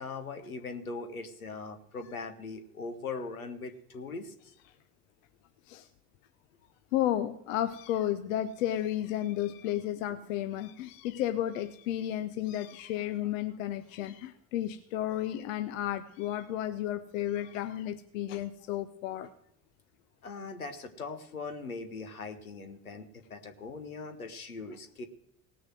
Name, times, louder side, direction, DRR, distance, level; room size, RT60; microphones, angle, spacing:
voice 1, 0.0-4.3 20.2-25.1, left 4 dB, 85° left, 7 dB, 1.1 m, -40 dB
voice 2, 6.9-19.3, left 12 dB, 65° left, 11 dB, 0.7 m, -33 dB
18.0 x 6.4 x 6.1 m, 0.76 s
figure-of-eight pair, 50°, 42 cm